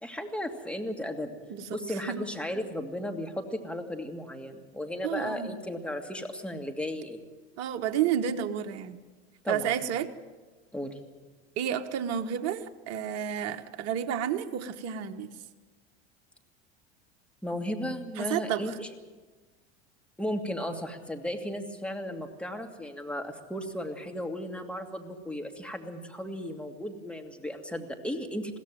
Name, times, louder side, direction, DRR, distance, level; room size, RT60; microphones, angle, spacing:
voice 1, 0.0-1.3 1.7-7.2 9.4-9.7 10.7-11.0 17.4-18.9 20.2-28.6, left 1 dB, 5° left, 4 dB, 2.5 m, -35 dB
voice 2, 5.0-5.5 7.6-9.0 9.5-10.1 11.6-15.3 18.2-18.8, right 9 dB, 50° right, 7 dB, 1.3 m, -31 dB
21.5 x 16.5 x 7.7 m, 1.3 s
hypercardioid pair, 80°, 32 cm